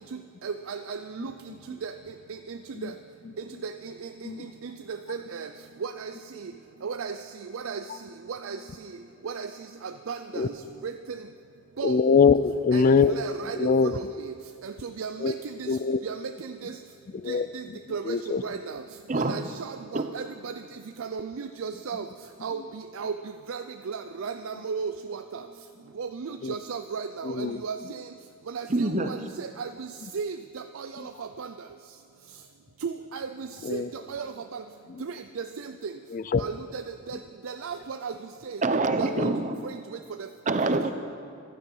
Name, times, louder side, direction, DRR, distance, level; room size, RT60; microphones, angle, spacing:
voice 1, 0.4-1.3 1.7-1.9 2.3-2.9 3.6-4.3 4.6-5.5 5.8-6.5 6.8-7.2 7.5-7.8 8.3-8.6 9.2-9.5 9.8-10.5 10.8-11.2 11.8-12.0 12.7-14.3 14.6-15.7 16.0-16.7 17.3-17.6 17.9-18.2 18.4-18.8 19.1-20.5 21.0-22.1 22.4-23.2 23.5-25.4 26.0-28.1 28.5-29.9 30.1-31.5 32.8-33.8 34.1-34.6 35.0-35.9 36.4-37.2 37.4-38.1 38.4-38.6 39.0-39.3 39.6-39.8 40.2-40.3 40.8-40.9, right 5 dB, 70° right, 0.5 m, -35 dB
voice 2, 11.8-13.2 13.6-13.9 15.2-15.3 15.7-16.0 17.2-17.5 18.1-18.4 26.4-26.5 27.3-27.6 29.0-29.1 33.7-33.9 36.1-36.4 39.1-39.3, left 5 dB, 40° left, 0.3 m, -22 dB
voice 3, 19.1-19.5 19.9-20.1 28.7-29.1 38.6-39.6 40.5-40.9, right 3 dB, 35° right, 0.8 m, -25 dB
15.5 x 11.5 x 5.5 m
head